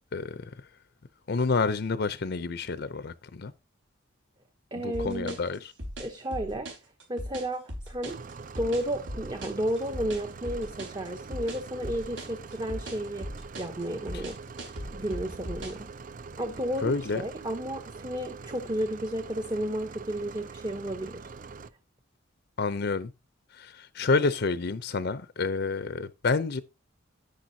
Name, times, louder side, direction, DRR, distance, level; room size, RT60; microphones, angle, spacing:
voice 1, 0.1-0.5 1.3-3.5 4.8-5.7 14.1-14.2 16.8-17.2 22.6-23.1 23.5-26.6, left 4 dB, 55° left, 0.6 m, -29 dB
voice 2, 4.7-5.4 6.0-6.7 7.1-8.2 8.6-13.3 13.6-14.4 14.9-15.9 16.4-21.3, right 1 dB, 25° right, 0.9 m, -32 dB
sound 1, 4.9-15.9, equal, 70° right, 4.4 m, -39 dB
sound 2, 8.1-21.7, right 4 dB, 45° right, 0.5 m, -44 dB
10.5 x 9.9 x 2.8 m
head